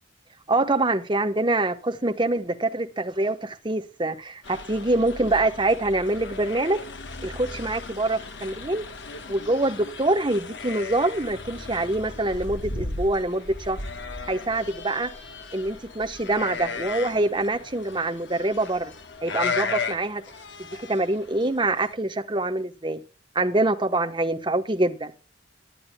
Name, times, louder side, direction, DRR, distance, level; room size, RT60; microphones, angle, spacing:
voice 1, 0.5-6.8 7.2-8.8 9.3-13.8 14.3-15.1 15.5-18.9 19.2-20.2 20.8-23.0 23.3-25.1, right 2 dB, 25° right, 1.1 m, -25 dB
sound 1, 4.4-21.9, left 4 dB, 65° left, 1.3 m, -36 dB
18.0 x 11.0 x 2.3 m
head